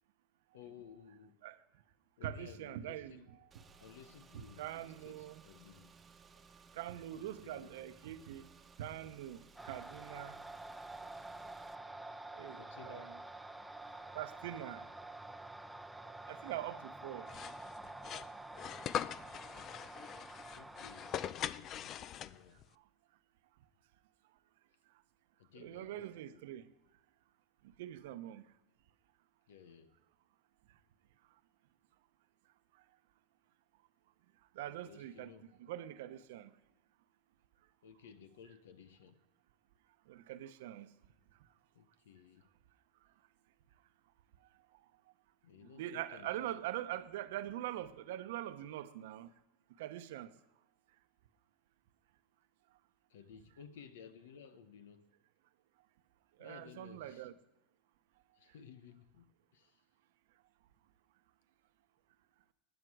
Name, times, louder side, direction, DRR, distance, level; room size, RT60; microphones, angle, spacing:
voice 1, 0.5-1.4 2.2-3.3 3.8-6.0 7.1-7.8 12.6-13.2 20.5-22.6 25.4-26.4 29.5-30.0 34.6-35.5 37.8-39.2 41.7-42.5 45.4-46.6 53.1-55.1 56.4-57.3 58.3-59.8, left 7 dB, 85° left, 1.0 m, -57 dB
voice 2, 2.2-3.4 4.6-5.4 6.7-8.4 8.8-10.4 12.4-13.2 14.1-14.9 16.3-17.3 25.5-26.6 27.8-28.4 34.6-35.3 35.6-36.5 40.1-40.9 45.7-49.3 49.8-50.3 56.4-57.3, right 13 dB, 75° right, 0.8 m, -43 dB
Car / Engine, 3.5-11.8, right 5 dB, 25° right, 1.0 m, -61 dB
sound 1, 9.6-21.3, right 2 dB, 5° right, 0.7 m, -49 dB
sound 2, 17.3-22.6, left 10 dB, 45° left, 0.4 m, -42 dB
19.0 x 9.0 x 4.8 m
hypercardioid pair, 95°, 0 cm